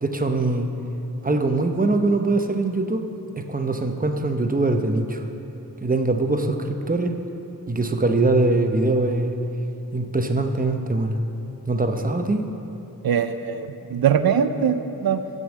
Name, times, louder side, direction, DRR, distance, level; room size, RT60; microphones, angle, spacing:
voice 1, 0.0-0.7 1.2-3.1 3.4-5.2 5.8-7.1 7.7-9.3 9.9-11.2 11.7-12.5, right 2 dB, 25° right, 5 dB, 0.8 m, -22 dB
voice 2, 13.0-15.2, right 8 dB, 75° right, 10 dB, 0.6 m, -22 dB
14.0 x 5.4 x 7.2 m, 3.0 s
wide cardioid pair, 100°, 37 cm